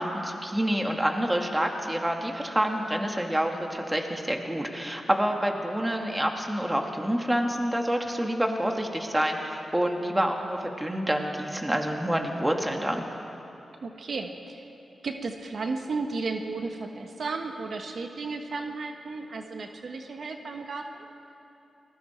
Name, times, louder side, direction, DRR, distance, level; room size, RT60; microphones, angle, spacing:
voice 1, 0.0-13.0, equal, 10° right, 2 dB, 2.1 m, -27 dB
voice 2, 13.8-14.6 15.0-21.0, right 3 dB, 70° right, 4 dB, 1.4 m, -34 dB
29.0 x 20.5 x 4.6 m, 2.8 s
cardioid pair, 80°, 0 cm